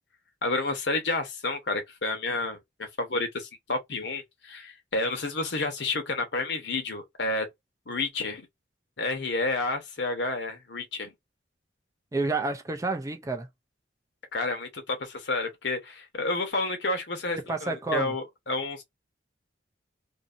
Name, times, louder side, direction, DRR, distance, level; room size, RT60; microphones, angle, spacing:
voice 1, 0.4-7.5 7.9-8.5 9.0-11.1 14.3-18.8, left 2 dB, 65° left, 0.9 m, -30 dB
voice 2, 12.1-13.5 17.5-18.1, right 3 dB, 15° right, 0.4 m, -29 dB
2.6 x 2.6 x 2.5 m
head